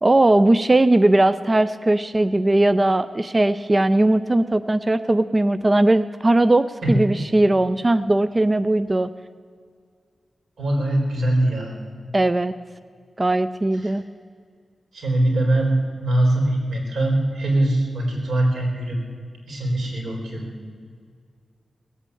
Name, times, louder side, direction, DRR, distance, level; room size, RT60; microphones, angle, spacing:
voice 1, 0.0-9.1 12.1-12.5 13.2-14.0, right 2 dB, 25° right, 13 dB, 0.4 m, -19 dB
voice 2, 10.6-11.7 13.7-13.9 14.9-15.8 16.0-19.0 19.5-20.5, right 1 dB, 85° right, 0 dB, 4.0 m, -22 dB
18.5 x 8.3 x 8.5 m, 2.1 s
wide cardioid pair, 115°, 0 cm